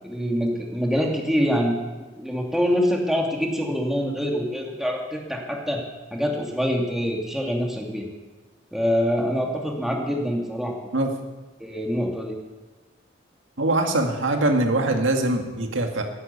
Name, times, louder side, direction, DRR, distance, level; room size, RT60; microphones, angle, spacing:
voice 1, 0.0-1.7 2.0-5.8 6.1-8.0 8.7-10.9 11.6-12.4, equal, ahead, 0 dB, 2.5 m, -25 dB
voice 2, 13.6-16.0, right 2 dB, 80° right, 3 dB, 2.0 m, -22 dB
14.0 x 11.0 x 8.5 m, 1.2 s
head